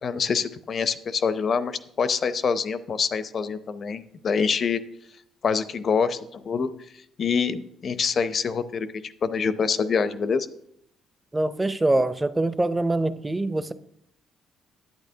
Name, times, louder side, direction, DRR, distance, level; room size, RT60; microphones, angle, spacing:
voice 1, 0.0-4.8 5.4-6.7 7.2-10.5, left 5 dB, 50° left, 0.6 m, -25 dB
voice 2, 11.3-13.7, right 2 dB, 15° right, 0.5 m, -24 dB
10.5 x 8.6 x 2.8 m
cardioid pair, 85°, 0 cm